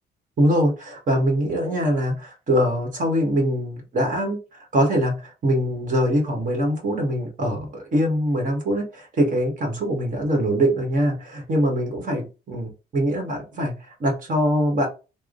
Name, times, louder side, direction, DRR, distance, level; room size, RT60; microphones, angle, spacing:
voice 1, 0.4-14.9, equal, 50° right, 2 dB, 1.4 m, -23 dB
3.5 x 2.1 x 3.7 m, 0.30 s
cardioid pair, 130°, 17 cm